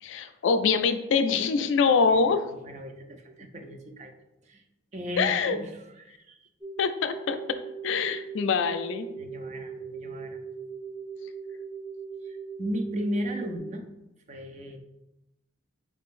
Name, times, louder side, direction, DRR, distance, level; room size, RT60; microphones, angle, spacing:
voice 1, 0.0-2.4 5.2-5.6 6.8-7.4 7.8-9.1, left 5 dB, 70° left, 9 dB, 0.3 m, -24 dB
voice 2, 1.9-4.1 4.4-4.6 4.9-6.5 9.2-10.4 12.2-13.8 14.3-14.8, equal, 35° right, 4 dB, 0.4 m, -36 dB
sound 1, 6.6-13.6, right 5 dB, 10° right, 1.1 m, -39 dB
4.2 x 3.6 x 2.5 m, 0.92 s
head